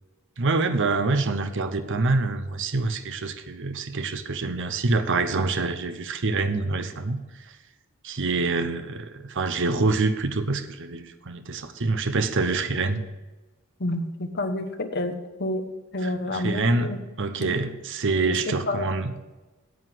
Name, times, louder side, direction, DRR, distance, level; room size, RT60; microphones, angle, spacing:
voice 1, 0.4-7.5 8.0-13.0 16.0-16.9 17.2-19.2, right 3 dB, 60° right, 9 dB, 0.8 m, -26 dB
voice 2, 13.8-15.1 15.4-15.6 15.9-17.0 17.4-17.5 18.7-18.8, left 1 dB, 50° left, 6 dB, 1.1 m, -28 dB
9.6 x 8.1 x 7.8 m, 1.1 s
head